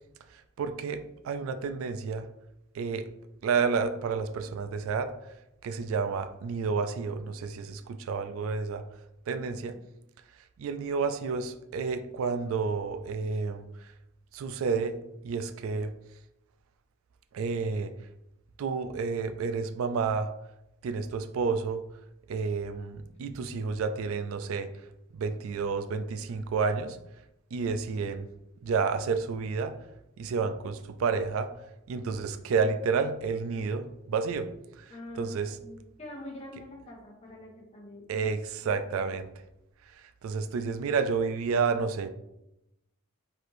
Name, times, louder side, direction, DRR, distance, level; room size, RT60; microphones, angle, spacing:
voice 1, 0.3-2.3 2.7-3.1 3.4-5.1 5.6-8.9 9.3-9.8 10.6-13.9 14.3-15.0 15.2-15.9 17.3-17.9 18.6-20.3 20.8-21.9 22.3-24.7 25.1-27.0 27.5-28.3 28.6-29.8 30.2-31.5 31.9-34.5 34.8-34.9 35.2-35.6 38.1-39.3 40.0-42.1, right 5 dB, 70° right, 10 dB, 0.3 m, -30 dB
voice 2, 34.9-38.3 38.6-39.1, left 1 dB, 30° left, -3 dB, 1.2 m, -46 dB
4.2 x 2.6 x 4.7 m, 0.87 s
head